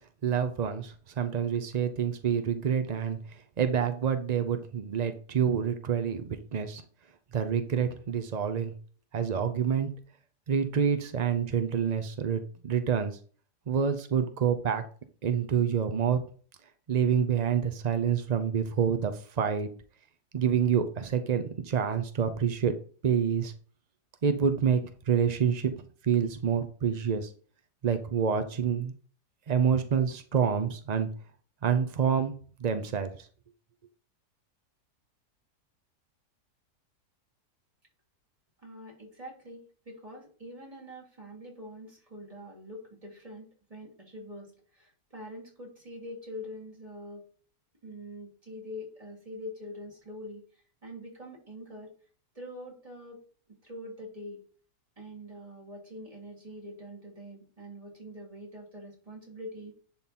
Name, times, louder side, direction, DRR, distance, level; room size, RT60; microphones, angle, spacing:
voice 1, 0.2-6.8 7.3-8.7 9.1-9.9 10.5-13.2 13.7-14.8 15.2-16.2 16.9-19.7 20.3-22.7 23.0-23.5 24.2-25.7 26.0-27.3 27.8-28.9 29.5-31.1 31.6-32.3 32.6-33.1, right 7 dB, 75° right, 8 dB, 0.3 m, -27 dB
voice 2, 38.6-47.3 47.8-51.9 52.3-53.2 53.6-54.4 55.0-59.7, left 1 dB, 20° right, -2 dB, 3.0 m, -44 dB
10.5 x 3.9 x 4.3 m, 0.41 s
omnidirectional pair, 1.7 m